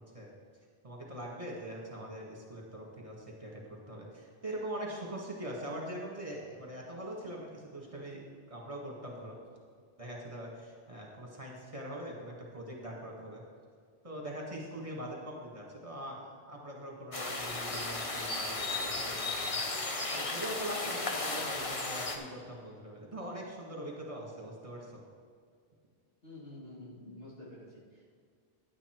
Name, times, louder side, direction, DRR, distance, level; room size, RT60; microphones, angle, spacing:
voice 1, 0.8-9.4 10.0-13.4 14.0-19.2 19.4-19.5 20.1-25.0, right 1 dB, 35° right, -2 dB, 1.9 m, -42 dB
sound 1, 17.1-22.2, left 3 dB, 35° left, 0.9 m, -35 dB
voice 2, 26.2-28.1, left 1 dB, 70° left, -5 dB, 2.9 m, -49 dB
10.5 x 8.8 x 4.6 m, 2.1 s
omnidirectional pair, 1.0 m